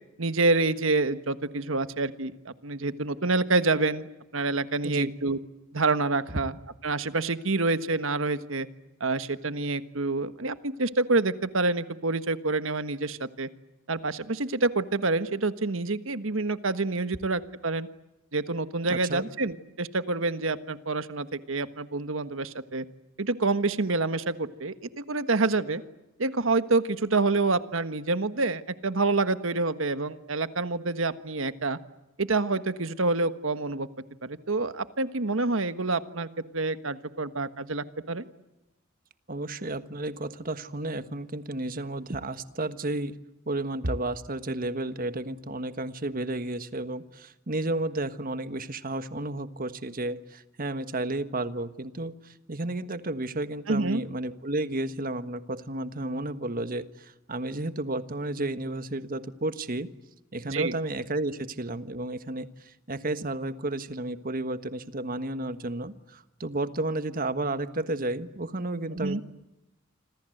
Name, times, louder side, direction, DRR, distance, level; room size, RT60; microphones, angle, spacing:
voice 1, 0.2-4.1 4.3-5.4 5.7-6.5 6.8-8.7 9.0-13.5 13.9-17.9 18.3-22.8 23.2-25.8 26.2-31.8 32.2-33.9 34.2-36.3 36.5-38.2 53.7-54.0 60.5-60.7 68.9-69.2, right 3 dB, 70° right, 12 dB, 1.4 m, -27 dB
voice 2, 18.9-19.3 39.3-43.1 43.5-59.9 60.3-69.2, right 2 dB, 45° right, 11 dB, 1.4 m, -32 dB
27.0 x 26.5 x 7.9 m, 0.98 s
head